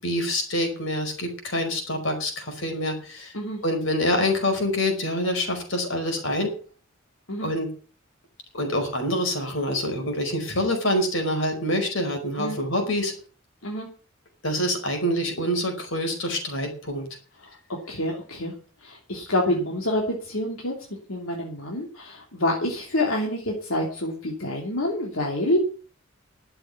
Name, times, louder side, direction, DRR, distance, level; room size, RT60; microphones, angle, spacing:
voice 1, 0.0-3.3 3.6-6.5 7.4-7.7 8.5-13.1 14.4-17.0 19.5-19.6, left 1 dB, 65° left, 4 dB, 5.1 m, -26 dB
voice 2, 17.9-18.5 18.8-20.7 21.1-25.6, left 1 dB, 85° left, 0 dB, 3.0 m, -27 dB
12.0 x 8.0 x 9.5 m, 0.41 s
head